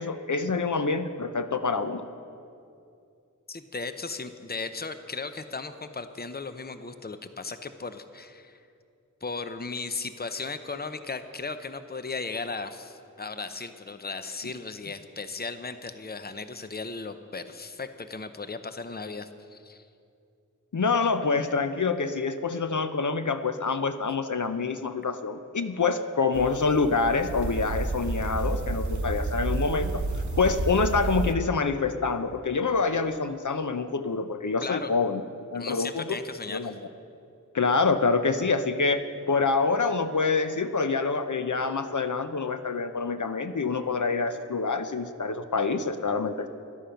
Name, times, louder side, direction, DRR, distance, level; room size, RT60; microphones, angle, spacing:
voice 1, 0.0-2.0 20.7-35.2 35.5-36.2 36.5-36.7 37.5-46.5, left 4 dB, 70° left, 9 dB, 0.6 m, -26 dB
voice 2, 3.5-8.6 9.2-19.8 34.6-34.9 35.5-36.7, left 4 dB, 30° left, 10 dB, 0.7 m, -36 dB
sound 1, 26.3-31.3, right 2 dB, 65° right, 0.9 m, -30 dB
13.0 x 12.0 x 5.7 m, 2.5 s
wide cardioid pair, 50°, 32 cm